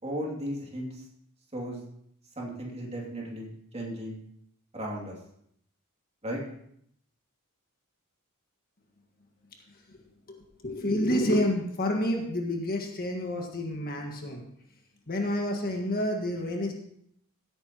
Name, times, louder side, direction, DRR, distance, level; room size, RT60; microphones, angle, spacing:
voice 1, 0.0-1.0 1.5-1.8 2.4-4.2 4.7-5.2 6.2-6.4, equal, 30° right, -1 dB, 2.7 m, -35 dB
voice 2, 9.7-10.0 10.3-14.4 15.1-16.7, left 1 dB, 45° left, 1 dB, 1.7 m, -29 dB
16.5 x 8.9 x 3.0 m, 0.69 s
head